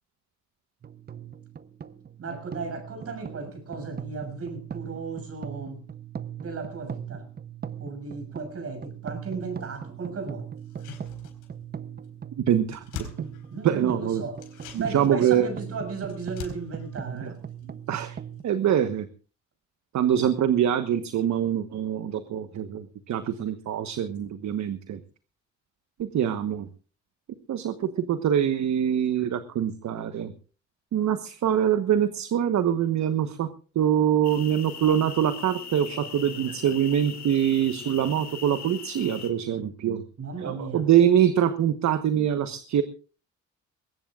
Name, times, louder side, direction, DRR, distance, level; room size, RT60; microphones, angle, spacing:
sound 1, 0.8-18.4, right 8 dB, 35° right, 0.8 m, -40 dB
voice 1, 2.2-5.8 6.4-7.3 7.8-10.5 13.5-14.4 14.8-17.4 40.2-40.9, right 4 dB, 50° right, 6.6 m, -35 dB
sound 2, 10.6-11.7 12.0-12.1 12.4-13.9 14.3-18.1 18.4-18.5, left 8 dB, 85° left, 4.6 m, -44 dB
voice 2, 12.5-12.8 13.2-13.3 13.6-14.2 14.7-15.5 17.1-17.3 17.9-18.2 18.4-19.1 19.9-25.0 26.0-26.7 27.5-30.3 30.9-33.5 33.7-40.0 40.4-42.8, right 9 dB, 65° right, 1.2 m, -24 dB
sound 3, 34.2-39.3, left 6 dB, 60° left, 3.1 m, -40 dB
22.0 x 18.0 x 2.5 m
cardioid pair, 90°, 30 cm